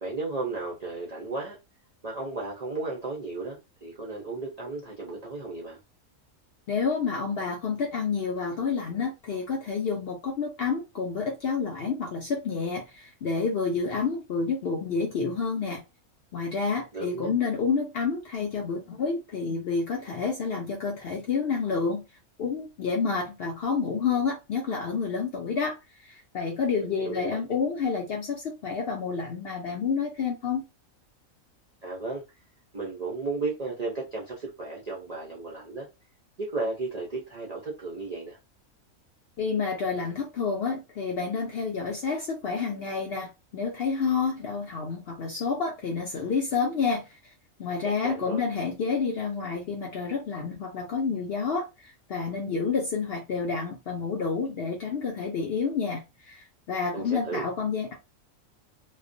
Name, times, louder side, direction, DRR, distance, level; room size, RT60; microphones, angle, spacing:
voice 1, 0.0-1.6 2.0-5.8 16.9-17.4 26.8-27.4 31.8-32.2 32.7-35.9 36.4-38.4 48.0-48.4 56.9-57.5, right 3 dB, 60° right, 0.4 m, -34 dB
voice 2, 6.7-15.8 16.3-22.0 22.4-25.8 26.0-30.7 39.4-47.1 47.6-57.9, left 5 dB, 65° left, 0.6 m, -29 dB
2.3 x 2.1 x 2.5 m
omnidirectional pair, 1.5 m